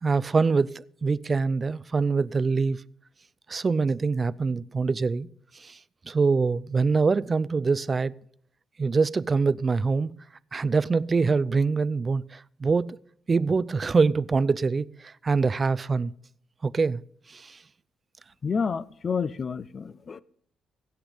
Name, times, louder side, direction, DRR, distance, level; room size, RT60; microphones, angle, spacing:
voice 1, 0.0-2.8 3.5-5.3 5.6-5.8 6.1-8.1 8.8-10.2 10.5-13.0 13.3-16.1 16.6-17.0 17.3-17.6, right 4 dB, 35° right, 0.4 m, -24 dB
voice 2, 18.4-20.2, left 5 dB, 40° left, 0.5 m, -29 dB
16.0 x 7.9 x 3.4 m
cardioid pair, 90°, 0 cm